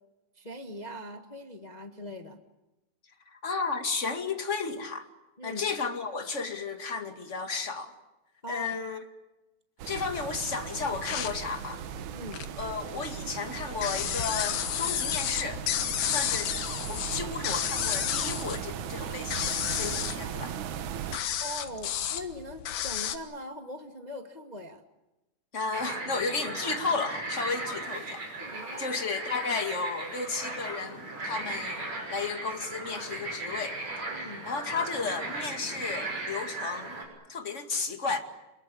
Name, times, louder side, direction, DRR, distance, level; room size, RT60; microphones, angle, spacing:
voice 1, 0.3-2.4 5.4-5.6 8.4-8.7 12.1-12.5 21.4-24.8 28.2-28.9 34.1-34.5, equal, 50° left, 0.5 m, -41 dB
voice 2, 3.3-5.1 5.4-7.9 8.5-9.1 9.8-11.8 12.6-15.6 16.1-16.5 16.9-20.5 25.5-28.2 28.8-31.8 32.1-33.8 34.4-37.0 37.3-38.2, left 4 dB, 25° left, 1.9 m, -33 dB
sound 1, 9.8-21.2, right 9 dB, 65° right, 2.5 m, -38 dB
sound 2, 10.8-12.6 13.0-23.2, left 10 dB, 85° left, 3.1 m, -32 dB
sound 3, 25.7-37.0, right 2 dB, 50° right, 7.4 m, -37 dB
27.5 x 21.5 x 8.7 m
omnidirectional pair, 3.8 m